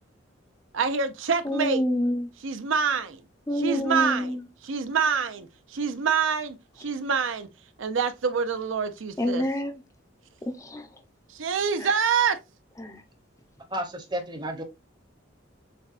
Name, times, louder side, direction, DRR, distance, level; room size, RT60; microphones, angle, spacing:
voice 1, 0.7-1.8 2.4-3.2 3.6-4.3 4.6-5.5 5.7-7.5 7.8-9.4 11.4-12.4, right 6 dB, 75° right, 0.6 m, -26 dB
voice 2, 1.4-2.3 3.5-4.5 9.2-9.8 10.5-10.9 11.8-11.9 12.8-13.0, left 1 dB, 15° left, 0.6 m, -27 dB
voice 3, 13.7-14.6, right 1 dB, 20° right, 0.8 m, -32 dB
6.8 x 2.3 x 2.4 m
head